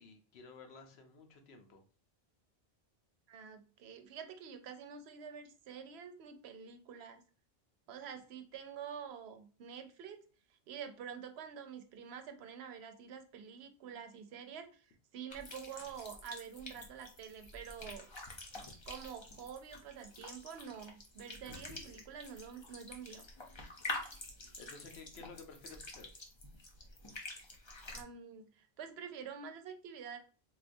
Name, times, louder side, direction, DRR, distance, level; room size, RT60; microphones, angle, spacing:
voice 1, 0.0-1.8 24.6-26.1, left 4 dB, 80° left, 5 dB, 0.9 m, -53 dB
voice 2, 3.3-7.2 7.9-10.2 10.7-18.1 18.9-23.2 27.9-30.2, right 7 dB, 80° right, 7 dB, 0.8 m, -47 dB
sound 1, 15.3-28.0, left 2 dB, 30° left, 0.6 m, -47 dB
3.9 x 2.3 x 2.5 m, 0.39 s
omnidirectional pair, 1.1 m